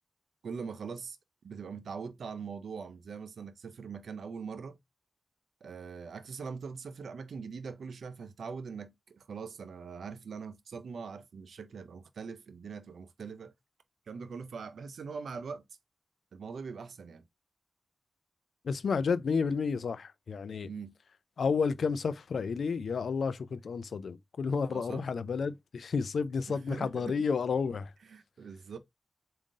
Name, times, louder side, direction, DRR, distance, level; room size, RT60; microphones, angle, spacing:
voice 1, 0.4-1.2 1.4-4.8 5.6-13.5 14.1-15.6 16.3-17.2 20.6-21.0 24.7-25.1 26.5-27.3 28.1-28.8, right 5 dB, 85° right, 0.4 m, -42 dB
voice 2, 18.6-20.7 21.4-27.9, left 5 dB, 85° left, 0.3 m, -31 dB
3.7 x 2.5 x 3.6 m
cardioid pair, 45°, 0 cm